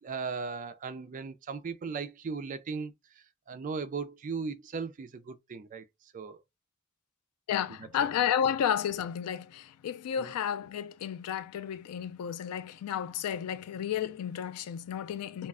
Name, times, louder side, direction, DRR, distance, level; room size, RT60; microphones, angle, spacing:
voice 1, 0.0-2.9 3.5-5.8 6.1-6.4 7.8-7.9 10.2-10.3, right 5 dB, 35° right, 0.3 m, -37 dB
voice 2, 7.5-15.5, left 9 dB, 85° left, 0.3 m, -32 dB
2.3 x 2.1 x 3.5 m
head